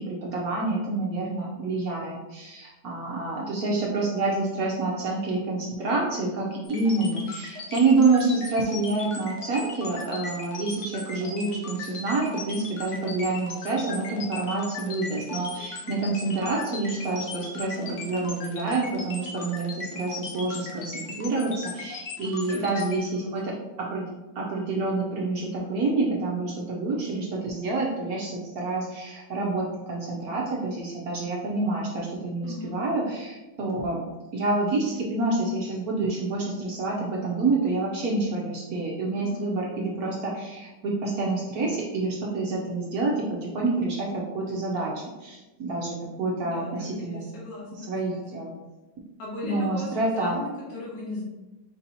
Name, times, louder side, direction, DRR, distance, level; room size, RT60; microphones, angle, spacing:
voice 1, 0.0-24.1 24.3-34.0 34.3-47.3 47.8-48.5 49.4-50.4, right 3 dB, 65° right, -3 dB, 1.1 m, -28 dB
sound 1, 6.6-23.0, left 3 dB, 50° left, 1.0 m, -38 dB
voice 2, 17.7-18.1 22.2-23.3 32.4-32.8 39.2-39.4 46.4-46.7 47.0-48.4 49.2-51.2, left 2 dB, 75° left, -6 dB, 1.9 m, -38 dB
4.5 x 2.8 x 4.1 m, 1.1 s
omnidirectional pair, 1.9 m